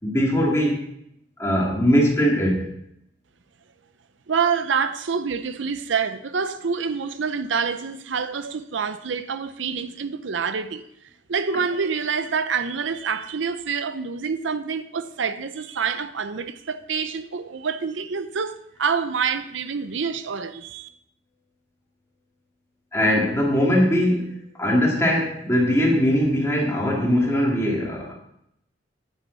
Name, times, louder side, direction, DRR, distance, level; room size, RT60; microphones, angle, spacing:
voice 1, 0.0-0.8 1.4-2.7 22.9-24.3 24.6-28.1, equal, 15° left, 2.4 m, -20 dB
voice 2, 4.3-10.8 11.3-20.9, right 6 dB, 85° right, 0.6 m, -27 dB
9.6 x 9.0 x 4.0 m
head